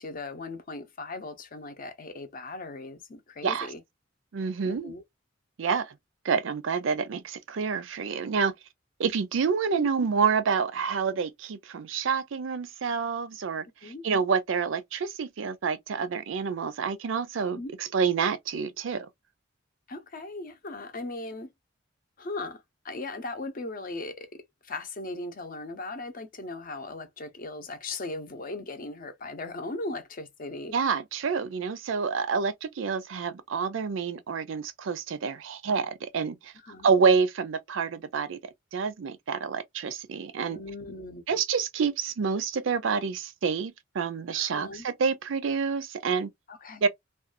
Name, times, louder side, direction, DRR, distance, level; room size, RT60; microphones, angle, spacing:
voice 1, 0.0-3.8 4.6-5.0 9.8-9.9 13.8-14.0 17.6-17.7 19.9-21.5 22.2-30.8 36.6-36.9 40.5-41.2 44.4-44.9 46.5-46.8, left 2 dB, 45° left, 0.6 m, -38 dB
voice 2, 4.3-4.9 5.6-5.9 6.2-8.5 9.0-19.1 30.7-36.5 36.8-38.4 38.7-40.6 41.3-46.3 46.8-46.9, right 5 dB, 70° right, 0.4 m, -28 dB
2.5 x 2.3 x 2.4 m
head